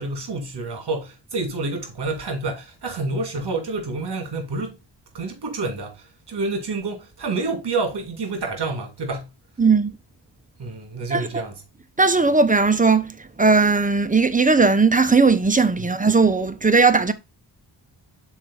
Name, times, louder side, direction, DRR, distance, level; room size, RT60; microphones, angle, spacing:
voice 1, 0.0-4.8 5.1-9.3 10.6-11.5, right 3 dB, 65° right, 2.5 m, -28 dB
voice 2, 9.6-10.0 11.1-11.3 12.0-17.1, right 4 dB, 20° right, 0.8 m, -18 dB
6.1 x 4.5 x 4.1 m
cardioid pair, 70°, 43 cm